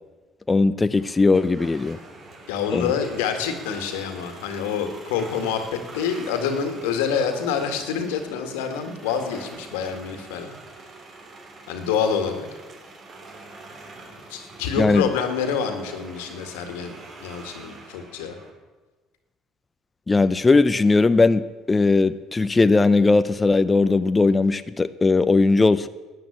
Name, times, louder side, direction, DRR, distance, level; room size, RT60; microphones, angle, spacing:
voice 1, 0.5-2.0 2.7-2.9 14.8-15.0 20.1-25.9, left 3 dB, 20° left, 12 dB, 0.6 m, -19 dB
sound 1, 0.9-18.5, right 3 dB, 45° right, 3.1 m, -44 dB
voice 2, 2.5-10.5 11.7-12.5 14.3-18.4, left 7 dB, 90° left, 7 dB, 2.0 m, -27 dB
12.0 x 9.4 x 8.6 m, 1.3 s
supercardioid pair, 80°, 0 cm